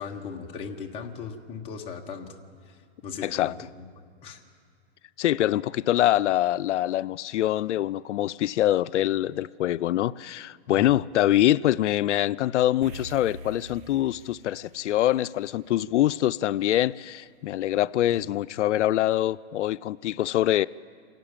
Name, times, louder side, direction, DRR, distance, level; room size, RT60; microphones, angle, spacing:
voice 1, 0.0-2.3 2.6-3.8 4.2-4.4 10.7-10.9 18.1-18.2, left 6 dB, 15° left, 2 dB, 1.2 m, -38 dB
voice 2, 3.2-3.5 5.2-20.7, left 13 dB, 85° left, 16 dB, 0.5 m, -24 dB
sound 1, 12.8-17.3, right 2 dB, 35° right, 1.1 m, -45 dB
27.5 x 12.0 x 8.9 m, 2.2 s
hypercardioid pair, 160°, 34 cm